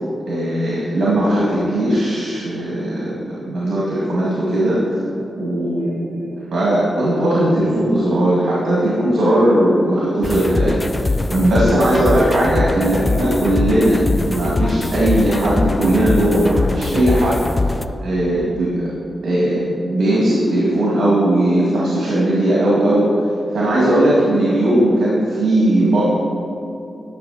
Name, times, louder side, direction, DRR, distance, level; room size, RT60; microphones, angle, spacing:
voice 1, 0.3-4.8 5.4-17.4 17.7-18.9 19.2-23.1 23.5-26.0, right 1 dB, 80° right, -7 dB, 2.1 m, -18 dB
Distorted Tape techno, 10.2-17.9, left 2 dB, 20° left, 0.3 m, -22 dB
11.5 x 6.5 x 4.2 m, 2.9 s
cardioid pair, 85°, 0 cm